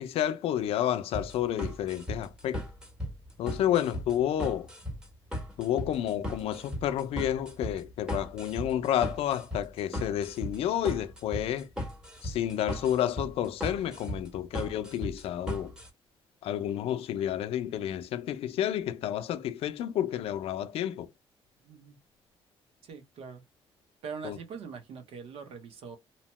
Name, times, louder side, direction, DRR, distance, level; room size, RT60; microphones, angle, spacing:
voice 1, 0.0-2.6 3.4-4.7 5.6-11.7 12.2-15.7 16.4-21.1 24.2-24.4, left 11 dB, 80° left, 0.4 m, -30 dB
sound 1, 1.1-15.9, equal, 10° right, 1.1 m, -37 dB
voice 2, 21.6-22.0 22.8-23.4 24.0-26.0, right 6 dB, 85° right, 0.8 m, -43 dB
2.9 x 2.1 x 2.9 m
cardioid pair, 130°, 10 cm